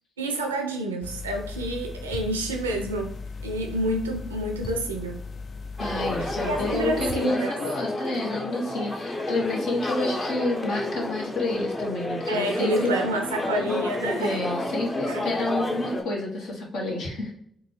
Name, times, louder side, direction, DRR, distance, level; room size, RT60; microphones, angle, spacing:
voice 1, 0.2-3.2 3.4-5.2 6.4-7.5 12.3-14.4 15.1-15.3, right 1 dB, 90° right, 3 dB, 0.4 m, -28 dB
sound 1, 1.0-7.2, left 4 dB, 50° left, 0.3 m, -37 dB
voice 2, 5.8-12.9 14.1-17.3, left 2 dB, 70° left, -2 dB, 1.0 m, -29 dB
sound 2, 5.8-16.0, left 2 dB, 25° left, 0.7 m, -30 dB
3.8 x 2.3 x 3.1 m, 0.68 s
hypercardioid pair, 40°, 0 cm